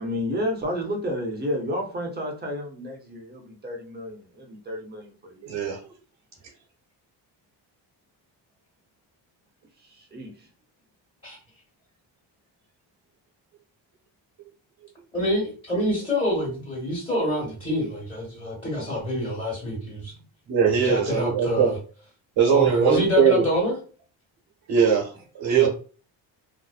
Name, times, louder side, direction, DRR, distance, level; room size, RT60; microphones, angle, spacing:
voice 1, 0.0-5.7 9.9-10.3 21.0-21.1, equal, 20° right, 1 dB, 0.7 m, -31 dB
voice 2, 5.4-5.9 20.5-21.7 22.4-23.5 24.7-25.7, right 7 dB, 65° right, -2 dB, 1.0 m, -21 dB
voice 3, 15.1-20.1 20.7-21.8 22.5-23.7 25.5-25.7, left 1 dB, 10° left, -6 dB, 1.3 m, -26 dB
2.6 x 2.0 x 2.3 m, 0.37 s
cardioid pair, 100°, 45 cm